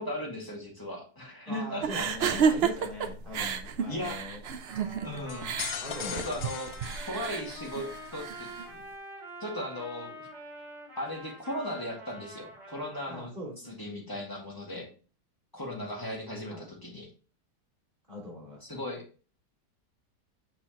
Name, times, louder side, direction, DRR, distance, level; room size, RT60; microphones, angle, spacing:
voice 1, 0.0-2.3 3.9-4.2 5.0-5.5 6.1-6.8 7.1-8.5 9.4-10.3 11.0-13.3 13.7-14.9 15.5-17.1 18.6-19.0, left 1 dB, 10° left, -1 dB, 1.7 m, -37 dB
voice 2, 1.5-4.4 5.8-6.2 13.1-14.1 14.7-14.8 16.5-16.7 18.1-18.6, left 1 dB, 30° right, -3 dB, 3.1 m, -41 dB
sound 1, 1.8-8.6, right 6 dB, 90° right, 0.5 m, -31 dB
Trumpet, 4.7-13.2, right 1 dB, 45° right, 2.8 m, -46 dB
sound 2, 5.3-7.8, left 9 dB, 70° left, 1.2 m, -39 dB
6.3 x 6.2 x 2.9 m, 0.37 s
omnidirectional pair, 1.8 m